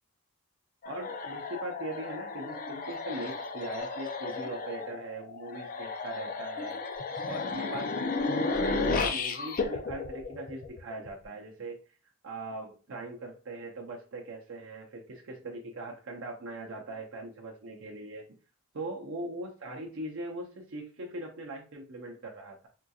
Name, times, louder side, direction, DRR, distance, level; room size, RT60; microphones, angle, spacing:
sound 1, 0.8-11.1, left 3 dB, 40° left, 0.4 m, -33 dB
voice 1, 0.9-6.8 7.2-11.8 12.2-18.2 18.7-22.7, right 2 dB, 60° right, -1 dB, 0.6 m, -40 dB
3.6 x 2.7 x 2.3 m, 0.35 s
head